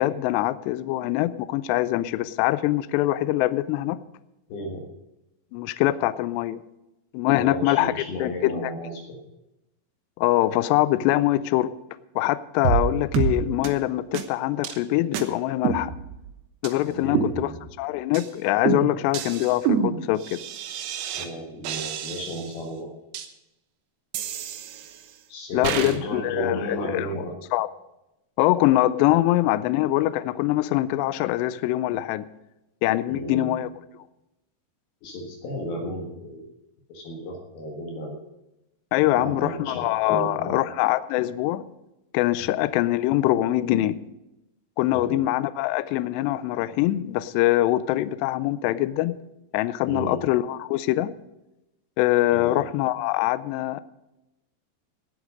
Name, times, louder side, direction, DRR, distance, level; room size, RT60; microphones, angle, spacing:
voice 1, 0.0-4.0 5.5-6.6 7.1-7.9 8.2-8.7 10.2-11.7 12.2-15.9 16.6-17.5 17.8-20.4 25.5-27.2 27.5-27.7 28.4-32.3 32.8-33.7 38.9-41.7 42.1-44.0 44.8-49.1 49.5-51.1 52.0-53.8, left 15 dB, 85° left, 14 dB, 2.6 m, -23 dB
voice 2, 4.5-4.9 7.4-9.2 16.9-17.6 21.1-22.9 25.3-27.3 33.1-33.6 35.0-36.5 36.9-38.2 39.1-40.6 42.4-42.5 44.9-45.3 49.9-50.2 52.3-52.7, equal, 65° left, 1 dB, 3.2 m, -33 dB
sound 1, 12.6-12.9 13.1-13.3 13.6-13.7 14.1-14.2 14.6-14.8 15.1-15.2 15.6-16.3 16.6-16.7 17.1-17.8 18.1-18.3 18.6-21.3 21.6-22.6 23.1-23.3 24.1-25.1 25.6-26.0, right 8 dB, 75° right, 2.8 m, -28 dB
18.0 x 8.0 x 5.2 m, 0.93 s
omnidirectional pair, 5.1 m